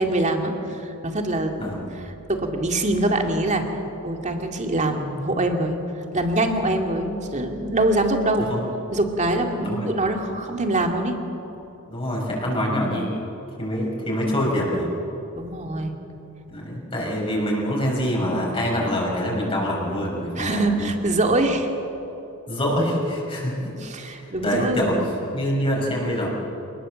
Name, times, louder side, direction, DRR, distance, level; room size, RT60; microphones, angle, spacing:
voice 1, 0.0-3.6 4.0-5.8 6.1-8.5 8.9-11.2 15.4-15.9 20.4-21.7 23.8-25.1, right 1 dB, 35° right, 4 dB, 2.4 m, -24 dB
voice 2, 9.6-9.9 11.9-13.1 13.6-14.9 16.5-20.9 22.5-23.5 24.2-25.0 25.3-26.3, equal, 25° left, -3 dB, 6.0 m, -25 dB
27.5 x 20.0 x 7.7 m, 3.0 s
head